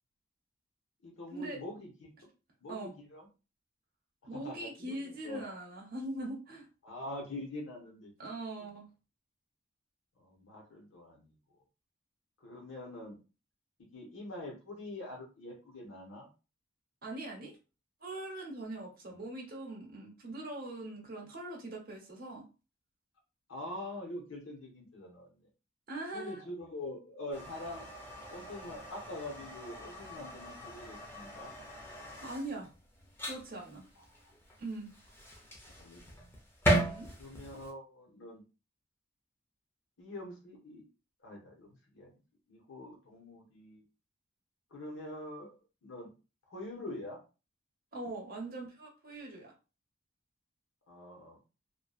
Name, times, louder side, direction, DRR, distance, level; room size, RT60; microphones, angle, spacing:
voice 1, 1.0-2.3 2.6-3.3 4.3-5.4 6.8-8.1 10.2-11.3 12.4-13.2 13.8-16.3 19.1-19.2 23.5-25.5 26.1-27.9 28.3-31.5 34.2-34.3 35.7-36.2 37.2-38.4 40.0-40.8 41.2-42.1 42.5-43.8 44.7-46.1 46.5-47.2 50.9-51.4, left 1 dB, 90° left, -1 dB, 0.8 m, -45 dB
voice 2, 4.3-6.7 8.2-8.9 17.0-17.6 18.0-22.5 25.9-26.5 32.2-32.7 33.2-33.8 34.6-34.9 36.7-37.1 47.9-49.5, right 2 dB, 50° right, 0 dB, 0.9 m, -41 dB
sound 1, 27.3-37.7, right 1 dB, 10° left, 0.5 m, -37 dB
2.7 x 2.2 x 2.3 m, 0.32 s
head